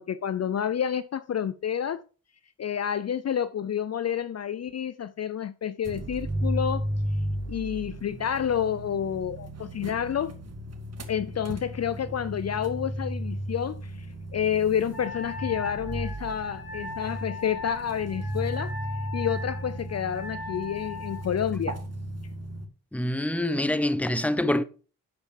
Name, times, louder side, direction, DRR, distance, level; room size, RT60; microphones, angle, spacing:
voice 1, 0.0-2.0 2.6-6.9 7.5-10.3 11.1-13.9 14.3-18.7 19.1-21.8, left 8 dB, 45° left, 0.6 m, -29 dB
sound 1, 5.8-22.7, right 1 dB, 40° right, 2.0 m, -35 dB
Wind instrument woodwind instrument, 14.9-21.3, left 3 dB, 75° left, 3.3 m, -39 dB
voice 2, 22.9-24.6, left 1 dB, 5° left, 0.9 m, -25 dB
8.5 x 6.8 x 4.7 m
supercardioid pair, 55°, 37 cm